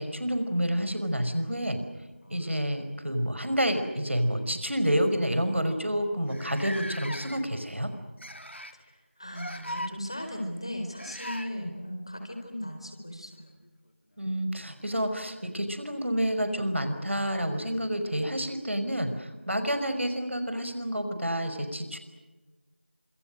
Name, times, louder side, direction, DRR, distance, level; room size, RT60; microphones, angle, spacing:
voice 1, 0.0-1.8 2.3-7.9 11.6-11.7 14.2-22.0, equal, 85° right, 8 dB, 5.4 m, -29 dB
sound 1, 1.7-2.8 3.9-4.0 4.4-4.6 5.3-5.4 5.6-5.7 6.3-7.6 8.2-8.8 9.3-9.9 11.0-11.5 13.6-13.7 14.8-14.9, equal, 75° left, 2.9 m, -39 dB
voice 2, 8.7-13.5, equal, 25° left, 4 dB, 4.6 m, -37 dB
30.0 x 27.5 x 6.6 m, 1.2 s
figure-of-eight pair, 180°, 6 cm